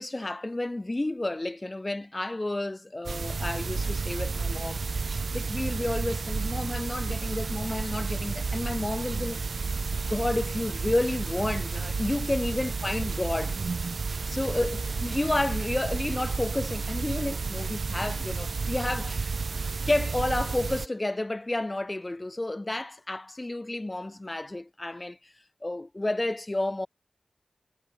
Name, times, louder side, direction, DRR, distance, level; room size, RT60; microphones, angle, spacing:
voice 1, 0.0-4.8 5.1-9.4 10.1-13.6 14.3-19.3 19.8-25.3 25.6-26.9, left 2 dB, 35° left, 1.2 m, -31 dB
sound 1, 3.0-20.9, right 4 dB, 80° right, 1.4 m, -31 dB
cardioid pair, 40°, 0 cm